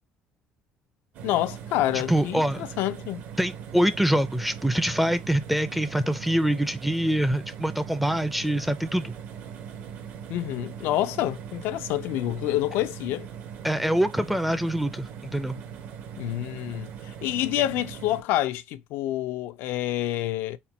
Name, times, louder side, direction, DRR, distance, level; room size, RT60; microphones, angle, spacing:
sound 1, 1.1-18.2, right 8 dB, 65° right, 0.8 m, -40 dB
voice 1, 1.2-3.2 10.3-13.3 16.2-20.6, left 14 dB, 80° left, 0.4 m, -28 dB
voice 2, 1.9-2.6 3.4-9.1 13.6-15.6, right 1 dB, 5° right, 0.4 m, -25 dB
4.2 x 2.1 x 4.0 m
cardioid pair, 125°, 4 cm